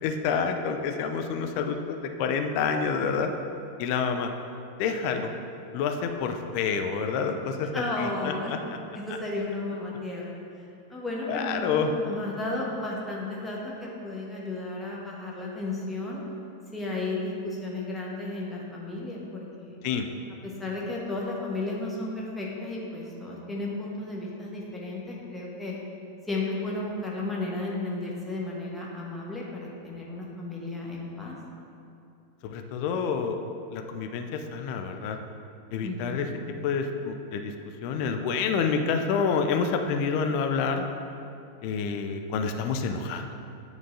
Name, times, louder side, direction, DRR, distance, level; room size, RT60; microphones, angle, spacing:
voice 1, 0.0-3.3 3.8-4.3 4.8-5.3 5.7-7.7 8.0-8.8 11.3-11.9 19.8-20.1 32.4-33.4 33.7-35.2 35.7-36.3 36.6-37.5 37.8-40.9 41.6-43.2, left 5 dB, 45° left, 5 dB, 0.5 m, -28 dB
voice 2, 7.7-8.6 8.9-10.4 10.9-16.2 16.7-19.8 20.4-25.7 26.3-31.3 35.8-36.4, left 2 dB, 10° left, -4 dB, 1.3 m, -33 dB
9.7 x 4.6 x 2.7 m, 2.6 s
figure-of-eight pair, 90°, 0 cm